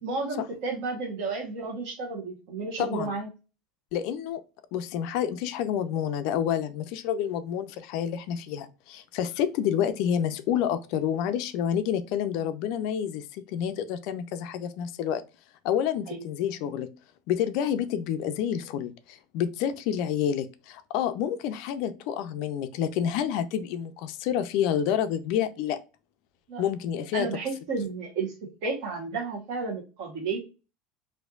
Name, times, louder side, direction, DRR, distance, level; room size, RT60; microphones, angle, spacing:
voice 1, 0.0-3.3 16.1-16.3 26.5-26.6 27.1-30.4, right 4 dB, 60° right, 1.2 m, -32 dB
voice 2, 2.8-3.1 3.9-4.4 4.7-15.2 15.6-16.9 17.3-25.8 26.6-27.3, left 9 dB, 55° left, 0.4 m, -28 dB
4.2 x 2.6 x 2.4 m
supercardioid pair, 160°, 0 cm